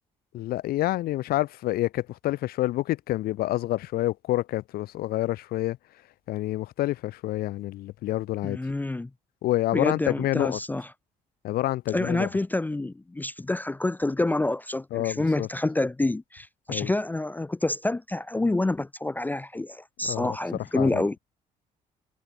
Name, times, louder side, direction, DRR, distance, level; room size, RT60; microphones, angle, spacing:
voice 1, 0.3-5.8 6.3-8.6 9.4-10.6 11.4-12.3 14.9-15.5 16.7-16.9 20.0-20.4 20.8-21.0, left 16 dB, 70° left, 0.7 m, -28 dB
voice 2, 8.4-9.1 9.7-10.9 11.9-21.2, left 2 dB, 10° left, 0.4 m, -27 dB
supercardioid pair, 80°, 16 cm